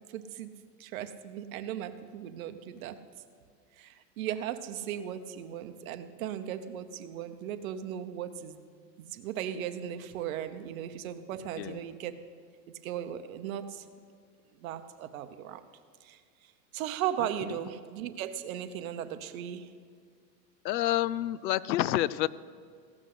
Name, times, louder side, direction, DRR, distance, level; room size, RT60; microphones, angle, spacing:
voice 1, 0.1-0.5 0.8-3.0 3.8-8.6 9.0-12.1 12.8-13.8 14.6-15.6 16.0-16.2 16.7-19.7, right 10 dB, 55° right, 9 dB, 1.0 m, -37 dB
voice 2, 20.6-22.3, left 14 dB, 85° left, 20 dB, 0.6 m, -28 dB
16.0 x 6.2 x 7.8 m, 2.1 s
supercardioid pair, 150°, 50 cm